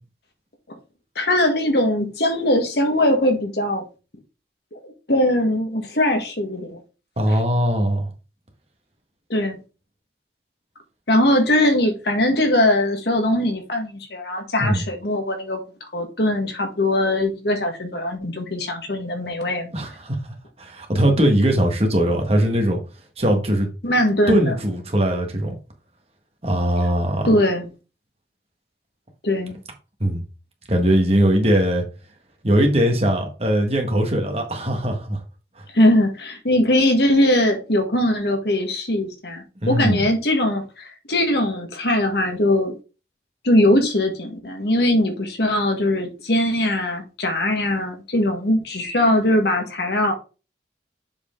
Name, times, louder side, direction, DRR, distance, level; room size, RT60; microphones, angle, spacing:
voice 1, 1.1-3.8 4.7-6.8 9.3-9.6 11.1-15.6 15.9-19.7 23.8-24.5 27.2-27.7 29.2-29.6 35.7-42.7 43.4-50.1, left 1 dB, 70° left, 1.7 m, -21 dB
voice 2, 7.2-8.1 14.6-14.8 19.7-20.2 20.6-22.8 23.2-23.7 24.3-25.5 26.4-27.3 30.0-30.2 30.7-31.8 32.4-35.2 35.6-35.7 39.6-40.0, right 1 dB, 35° right, 1.7 m, -20 dB
7.3 x 4.9 x 3.8 m
head